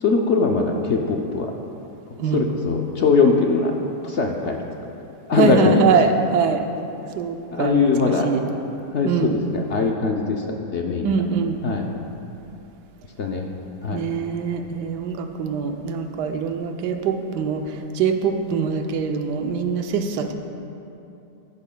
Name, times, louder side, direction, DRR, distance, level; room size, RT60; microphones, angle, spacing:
voice 1, 0.0-1.5 2.3-4.6 5.3-5.8 7.5-8.3 8.9-11.1 11.6-11.8 13.2-13.4 13.8-14.0, left 4 dB, 60° left, 1 dB, 0.7 m, -21 dB
voice 2, 5.4-6.6 7.1-7.9 8.2-8.4 9.0-9.4 11.0-11.6 13.9-17.6 17.9-20.3, right 5 dB, 75° right, 5 dB, 1.3 m, -23 dB
14.5 x 11.0 x 2.2 m, 2.8 s
omnidirectional pair, 1.8 m